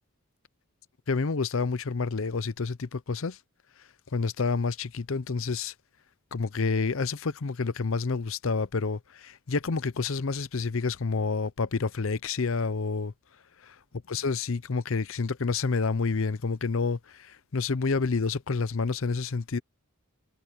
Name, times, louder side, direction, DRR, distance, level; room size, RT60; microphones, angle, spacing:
voice 1, 1.1-3.4 4.1-5.7 6.3-13.1 13.6-13.8 14.1-19.6, left 4 dB, 65° left, 0.6 m, -29 dB
head